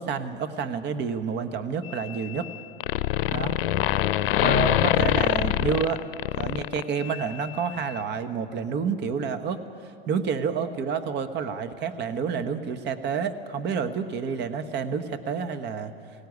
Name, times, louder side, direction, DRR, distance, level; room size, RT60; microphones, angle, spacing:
voice 1, 0.0-2.5 3.3-3.6 4.4-6.0 6.3-9.6 10.1-15.9, right 6 dB, 35° right, 9 dB, 1.3 m, -29 dB
sound 1, 1.9-2.5 2.8-7.2, left 14 dB, 65° left, 0.7 m, -24 dB
18.5 x 16.5 x 9.6 m, 2.7 s
hypercardioid pair, 100°, 30 cm